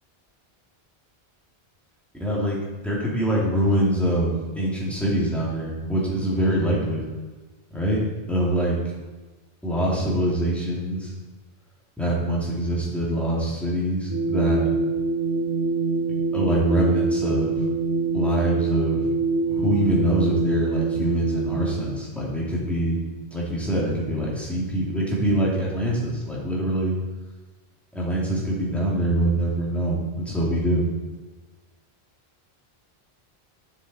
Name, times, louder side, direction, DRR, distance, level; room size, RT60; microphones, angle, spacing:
voice 1, 2.2-7.0 7.7-8.0 8.3-8.8 9.6-11.1 12.0-14.7 16.3-17.6 18.1-19.1 19.5-23.0 23.3-27.0 27.9-30.8, right 1 dB, ahead, -6 dB, 2.4 m, -24 dB
sound 1, 14.1-22.1, right 3 dB, 20° right, 1.4 m, -25 dB
9.5 x 7.1 x 4.2 m, 1.2 s
omnidirectional pair, 1.1 m